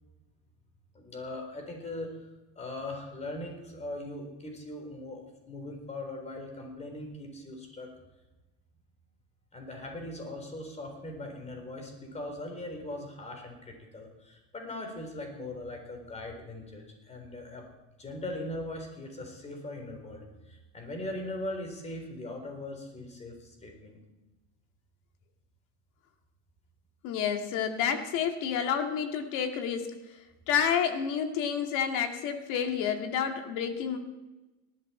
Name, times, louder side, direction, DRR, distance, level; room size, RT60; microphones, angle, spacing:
voice 1, 0.9-2.1 2.6-7.9 9.5-17.6 18.0-24.0, left 1 dB, 20° left, 3 dB, 4.0 m, -40 dB
voice 2, 27.0-29.9 30.5-34.0, left 8 dB, 65° left, 5 dB, 2.3 m, -29 dB
19.0 x 13.5 x 4.5 m, 1.1 s
cardioid pair, 135°, 34 cm